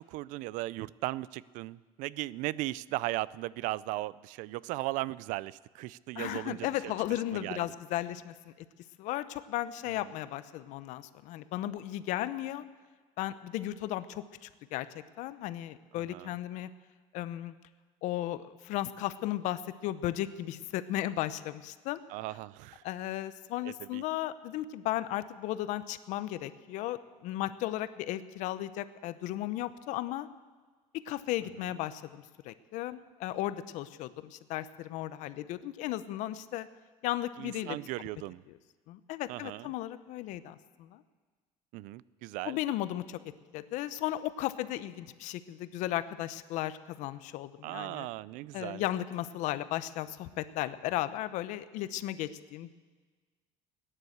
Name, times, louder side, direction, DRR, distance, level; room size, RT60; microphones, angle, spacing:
voice 1, 0.0-6.9 7.3-7.6 10.0-10.1 15.9-16.3 22.1-22.8 23.6-24.0 31.6-31.7 37.4-38.4 39.3-39.7 41.7-42.6 47.6-48.8, right 18 dB, 70° right, 21 dB, 0.4 m, -37 dB
voice 2, 6.2-8.5 9.0-12.6 13.2-14.9 15.2-16.7 17.1-17.5 18.0-22.0 22.8-30.3 30.9-36.7 37.0-37.8 38.9-41.0 42.4-43.2 43.5-48.1 48.5-52.7, left 14 dB, 65° left, 14 dB, 0.7 m, -35 dB
17.5 x 10.0 x 8.0 m, 1.4 s
cardioid pair, 165°, 14 cm